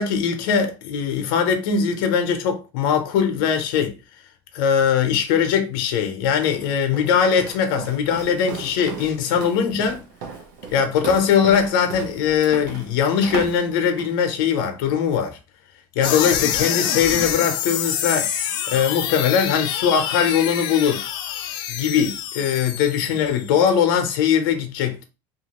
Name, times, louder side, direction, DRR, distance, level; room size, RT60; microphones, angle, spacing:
voice 1, 0.0-3.9 4.5-10.0 10.7-15.4 16.0-18.3 18.7-21.1 21.7-25.0, left 7 dB, 70° left, 0.7 m, -21 dB
Walk footsteps, 6.4-14.2, right 6 dB, 70° right, 0.9 m, -36 dB
sound 1, 16.0-23.5, left 9 dB, 40° left, 0.4 m, -26 dB
2.9 x 2.6 x 2.9 m
cardioid pair, 165°, 12 cm